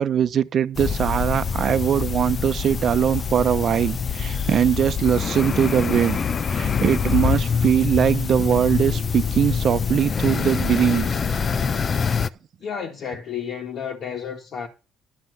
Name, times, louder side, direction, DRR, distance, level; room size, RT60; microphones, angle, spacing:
voice 1, 0.0-6.2 6.5-11.2, right 9 dB, 55° right, 0.8 m, -21 dB
sound 1, 0.8-12.3, left 6 dB, 40° left, 0.7 m, -25 dB
voice 2, 12.6-14.7, left 7 dB, 60° left, 1.7 m, -31 dB
11.5 x 5.8 x 8.0 m
cardioid pair, 90°, 0 cm